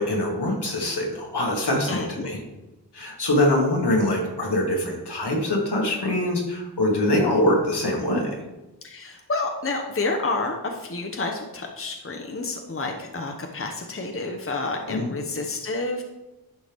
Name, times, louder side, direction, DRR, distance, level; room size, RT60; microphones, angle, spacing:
voice 1, 0.0-2.4 2.9-8.4 14.9-15.1, left 1 dB, 80° left, -1 dB, 1.9 m, -23 dB
voice 2, 1.9-2.3 8.8-16.0, left 3 dB, 35° left, 3 dB, 0.9 m, -29 dB
10.5 x 4.7 x 3.6 m, 1.0 s
wide cardioid pair, 60°, 39 cm